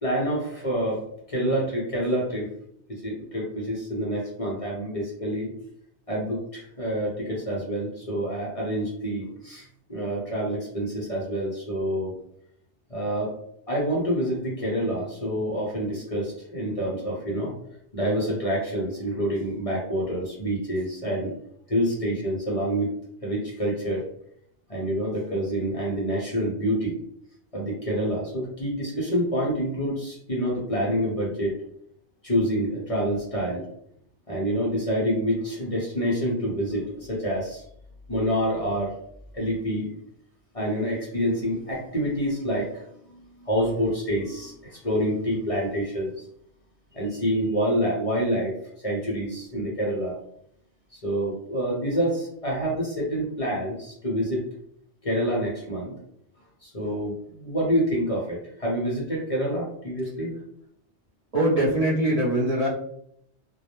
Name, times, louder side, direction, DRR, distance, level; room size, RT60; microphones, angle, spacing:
voice 1, 0.0-2.5 2.9-5.5 6.1-12.1 12.9-13.4 13.7-17.5 17.9-21.3 21.7-22.9 23.2-24.1 24.7-26.9 27.5-31.6 32.2-33.7 34.3-37.7 38.1-39.0 39.3-39.9 40.5-46.3 46.9-50.1 50.9-54.5 55.0-55.9 56.6-60.3, equal, 40° left, -4 dB, 0.6 m, -27 dB
voice 2, 61.3-62.7, right 1 dB, 50° right, -7 dB, 0.5 m, -22 dB
2.2 x 2.0 x 2.9 m, 0.70 s
omnidirectional pair, 1.2 m